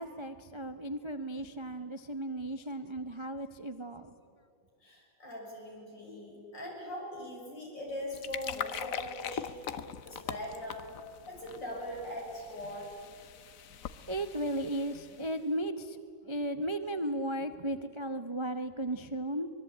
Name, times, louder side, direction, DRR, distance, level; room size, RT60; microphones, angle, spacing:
voice 1, 0.0-4.1 14.1-16.0 16.2-19.5, right 1 dB, 35° right, 9 dB, 0.5 m, -35 dB
voice 2, 4.8-10.9 11.2-12.9, left 1 dB, 75° left, -2 dB, 7.2 m, -41 dB
sound 1, 7.9-15.4, left 8 dB, 55° left, 1.1 m, -42 dB
24.5 x 22.0 x 8.7 m, 2.5 s
omnidirectional pair, 2.0 m